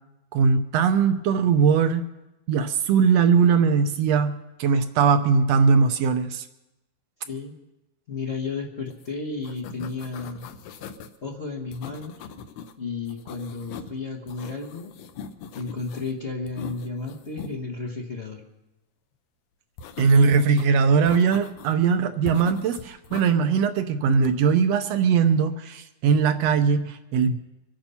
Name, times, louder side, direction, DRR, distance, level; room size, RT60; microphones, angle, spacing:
voice 1, 0.3-2.0 2.5-6.4 20.0-27.4, right 5 dB, 70° right, 9 dB, 1.7 m, -20 dB
voice 2, 7.2-7.5 8.1-10.5 11.2-12.3 12.8-14.9 15.5-18.4, left 4 dB, 55° left, -2 dB, 0.7 m, -33 dB
sound 1, 8.9-9.1 9.3-11.2 11.7-12.7 13.1-14.0 14.3-16.1 16.5-17.5 19.8-20.7 21.1-21.8 22.2-23.3 24.1-24.6, left 6 dB, 75° left, 1.9 m, -41 dB
24.5 x 9.0 x 5.6 m, 0.96 s
omnidirectional pair, 3.4 m